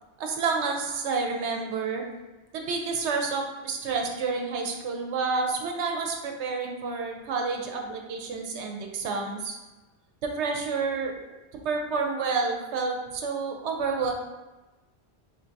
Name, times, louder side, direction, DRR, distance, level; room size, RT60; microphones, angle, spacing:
voice 1, 0.2-2.0 2.5-9.5 10.2-11.2 11.6-14.1, right 4 dB, 90° right, 2 dB, 0.9 m, -29 dB
3.2 x 2.6 x 4.5 m, 1.1 s
omnidirectional pair, 1.1 m